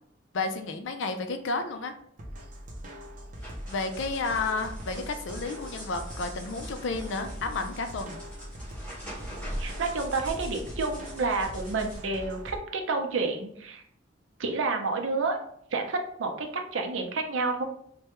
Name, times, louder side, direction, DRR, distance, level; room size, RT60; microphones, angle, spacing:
voice 1, 0.3-1.9 3.7-8.2, left 3 dB, 75° left, 7 dB, 0.4 m, -31 dB
sound 1, 2.2-12.6, equal, 40° right, 0.6 m, -42 dB
sound 2, 3.3-12.0, equal, 5° left, 1.3 m, -42 dB
voice 2, 9.6-13.8 14.4-15.4 15.7-17.6, right 3 dB, 90° right, 4 dB, 0.6 m, -29 dB
3.3 x 2.2 x 2.9 m, 0.66 s
head